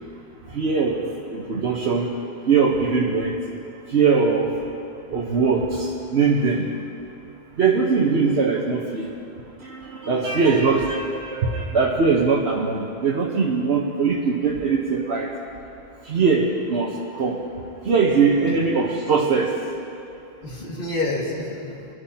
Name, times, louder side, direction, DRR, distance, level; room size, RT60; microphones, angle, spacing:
voice 1, 0.5-2.1 2.5-3.4 3.9-4.5 5.1-6.7 7.6-9.1 9.6-15.3 16.0-17.4 17.8-19.6, right 5 dB, 70° right, -2 dB, 1.3 m, -21 dB
voice 2, 10.2-10.8 18.4-18.6 20.4-21.9, left 2 dB, 50° left, -4 dB, 2.3 m, -30 dB
24.0 x 12.5 x 2.8 m, 2.5 s
omnidirectional pair, 1.2 m